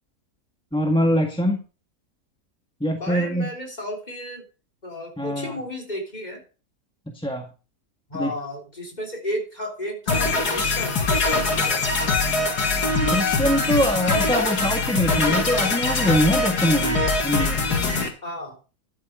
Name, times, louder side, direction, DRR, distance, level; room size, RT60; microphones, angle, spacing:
voice 1, 0.7-1.6 2.8-3.5 5.2-5.6 7.1-7.5 8.1-8.3 13.0-17.7, equal, 5° left, 2 dB, 1.5 m, -23 dB
voice 2, 3.0-4.4 4.8-6.4 8.1-12.3 18.2-18.6, left 1 dB, 25° left, 2 dB, 3.9 m, -33 dB
sound 1, 10.1-18.1, left 3 dB, 85° left, 2.5 m, -22 dB
12.5 x 7.7 x 5.0 m, 0.34 s
omnidirectional pair, 1.7 m